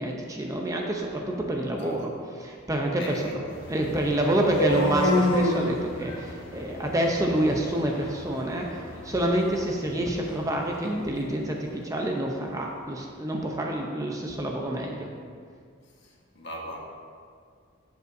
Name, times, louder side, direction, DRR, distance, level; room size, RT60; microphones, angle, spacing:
voice 1, 0.0-2.1 2.4-3.2 3.7-15.1, right 1 dB, 15° right, 0 dB, 0.6 m, -27 dB
voice 2, 1.8-2.1 3.0-4.9 15.8-16.8, equal, 55° left, -2 dB, 1.3 m, -42 dB
sound 1, 3.5-11.5, left 1 dB, 85° left, 1.2 m, -31 dB
14.0 x 5.3 x 2.7 m, 2.1 s
head